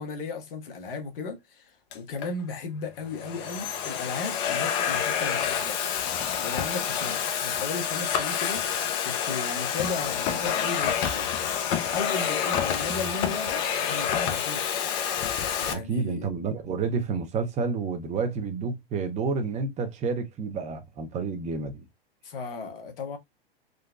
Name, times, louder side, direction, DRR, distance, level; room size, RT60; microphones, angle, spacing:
voice 1, 0.0-5.8 6.4-11.3 11.9-14.6 15.6-16.3 22.2-23.2, left 4 dB, 65° left, 1.3 m, -35 dB
Domestic sounds home sounds, 1.9-2.3 3.0-15.7, left 8 dB, 45° left, 0.7 m, -28 dB
voice 2, 15.7-21.8, right 4 dB, 20° right, 0.7 m, -29 dB
3.9 x 2.1 x 2.5 m
hypercardioid pair, 110°, 31 cm